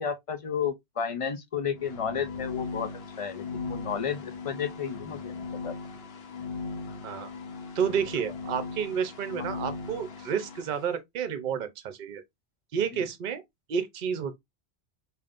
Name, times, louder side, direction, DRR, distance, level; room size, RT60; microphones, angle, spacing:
voice 1, 0.0-2.9 3.2-5.7, left 7 dB, 50° left, 0.4 m, -32 dB
sound 1, 1.7-10.8, left 4 dB, 70° left, 1.0 m, -38 dB
voice 2, 7.7-12.2 12.7-13.4 13.7-14.4, right 7 dB, 55° right, 0.7 m, -30 dB
5.0 x 2.6 x 2.4 m
omnidirectional pair, 1.1 m